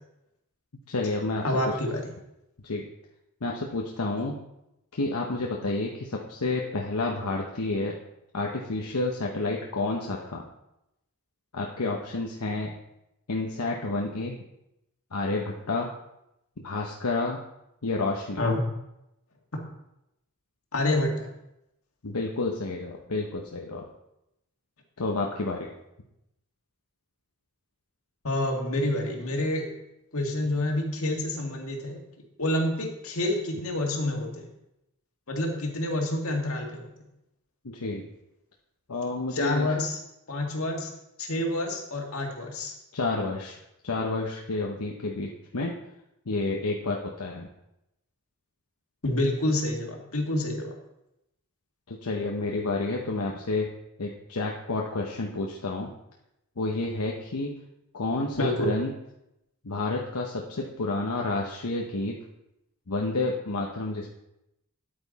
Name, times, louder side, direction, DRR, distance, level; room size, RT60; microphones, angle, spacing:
voice 1, 0.9-1.4 2.6-2.9 3.4-4.4 4.9-8.0 8.3-10.4 11.5-12.7 13.3-14.4 15.1-15.9 16.6-17.4 17.8-18.4 22.0-23.9 25.0-25.7 37.6-38.0 38.9-39.7 42.9-43.6 43.8-45.7 46.3-47.5 51.9-53.7 54.0-55.9 56.6-57.5 57.9-58.9 59.6-62.2 62.9-64.1, left 2 dB, 90° left, -1 dB, 1.0 m, -30 dB
voice 2, 1.4-2.0 18.4-18.6 20.7-21.3 28.2-29.7 30.1-32.0 32.4-34.5 35.3-36.9 39.3-40.0 40.3-40.9 41.2-42.7 49.0-50.7 58.3-58.7, left 1 dB, 70° left, 1 dB, 2.0 m, -28 dB
9.5 x 8.8 x 4.1 m, 0.86 s
head